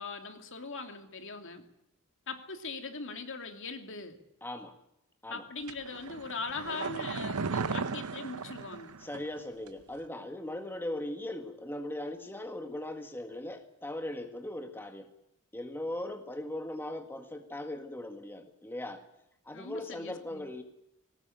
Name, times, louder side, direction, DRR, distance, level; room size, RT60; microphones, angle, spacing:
voice 1, 0.0-1.6 2.3-4.2 5.3-8.9 19.5-20.5, left 4 dB, 60° left, 6 dB, 2.8 m, -40 dB
voice 2, 4.4-4.7 5.2-5.4 9.0-15.1 15.5-19.0 19.4-20.6, left 1 dB, 10° left, 5 dB, 1.6 m, -39 dB
sound 1, 5.7-9.4 9.7-9.8, right 4 dB, 75° right, 0.8 m, -36 dB
21.0 x 18.5 x 8.9 m, 0.83 s
head